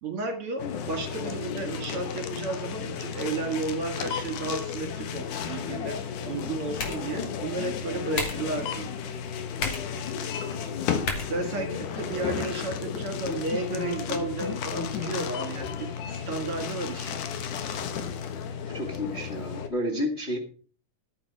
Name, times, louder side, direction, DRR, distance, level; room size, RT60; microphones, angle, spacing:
voice 1, 0.0-6.0 6.3-8.9 11.3-17.2, right 3 dB, 50° right, 5 dB, 2.7 m, -33 dB
sound 1, 0.6-19.7, left 7 dB, 85° left, 2.9 m, -33 dB
sound 2, 6.3-12.3, left 3 dB, 55° left, 3.6 m, -38 dB
voice 2, 18.5-20.4, left 1 dB, 25° left, 1 dB, 2.0 m, -31 dB
13.5 x 8.8 x 4.7 m, 0.41 s
omnidirectional pair, 3.5 m